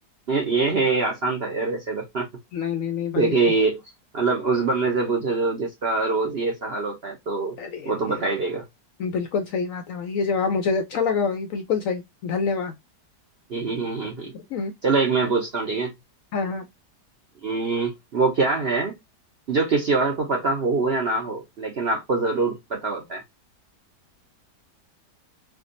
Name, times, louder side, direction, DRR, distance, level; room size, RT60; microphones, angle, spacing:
voice 1, 0.3-2.3 3.2-3.8 4.1-7.5 7.8-8.6 13.5-14.3 14.8-15.9 17.4-18.9 19.5-23.2, right 3 dB, 55° right, 0.7 m, -24 dB
voice 2, 2.5-3.3 7.6-8.2 9.0-12.7 14.3-14.7 16.3-16.6, left 5 dB, 70° left, 0.8 m, -26 dB
3.5 x 2.3 x 2.4 m
omnidirectional pair, 1.8 m